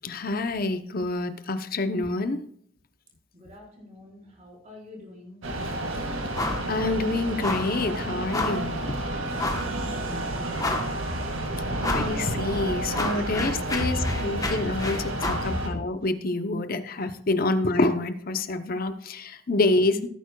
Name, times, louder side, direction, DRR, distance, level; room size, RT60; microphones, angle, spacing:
voice 1, 0.0-2.4 6.7-8.9 11.9-20.1, left 2 dB, 45° left, 10 dB, 0.7 m, -27 dB
voice 2, 3.3-5.4 9.4-10.6 13.1-13.2 13.7-14.3 15.4-15.6, equal, 35° right, -2 dB, 4.0 m, -37 dB
sound 1, 5.4-15.7, right 1 dB, 70° right, 1.9 m, -31 dB
sound 2, 6.3-6.7 7.0-7.1 7.4-7.8 8.3-8.7 9.4-9.7 10.2-10.3 10.6-11.1 11.8-12.2 12.5-15.5, left 2 dB, 15° left, 1.0 m, -30 dB
16.5 x 9.2 x 2.3 m, 0.65 s
head